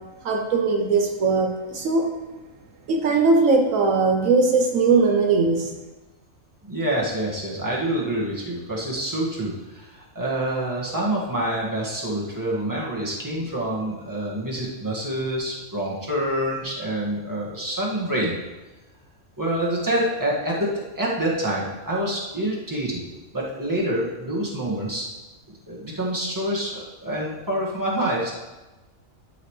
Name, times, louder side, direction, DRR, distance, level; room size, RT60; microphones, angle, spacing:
voice 1, 0.2-2.1 2.9-5.7, right 4 dB, 75° right, 2 dB, 1.2 m, -20 dB
voice 2, 6.6-18.3 19.4-23.0 23.3-25.0 25.7-28.3, right 1 dB, 15° right, -5 dB, 1.7 m, -27 dB
12.0 x 6.0 x 3.2 m, 1.1 s
omnidirectional pair, 1.4 m